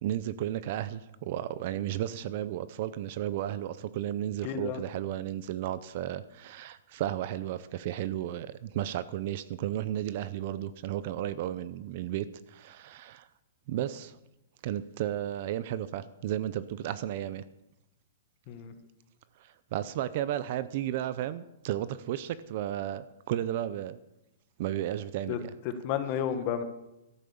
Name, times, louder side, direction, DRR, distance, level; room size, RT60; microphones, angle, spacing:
voice 1, 0.0-13.3 13.7-14.2 14.6-17.4 19.4-24.0 24.6-25.5, right 12 dB, 35° right, 15 dB, 0.5 m, -33 dB
voice 2, 4.4-4.8 18.5-18.7 25.3-25.4 25.8-26.6, left 9 dB, 30° left, 9 dB, 1.3 m, -31 dB
13.5 x 8.7 x 7.1 m, 0.91 s
hypercardioid pair, 175°, 0 cm